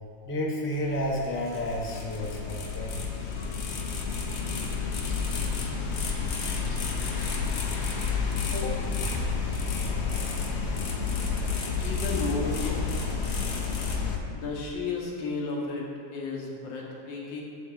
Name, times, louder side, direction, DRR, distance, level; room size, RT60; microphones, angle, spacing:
voice 1, 0.3-3.0 8.5-8.8, left 1 dB, 20° left, -2 dB, 0.3 m, -31 dB
sound 1, 0.7-14.2, left 5 dB, 55° left, 0.7 m, -30 dB
voice 2, 11.8-12.9 14.3-17.4, left 3 dB, 80° left, -2 dB, 1.9 m, -33 dB
7.6 x 6.8 x 3.7 m, 2.3 s
omnidirectional pair, 2.0 m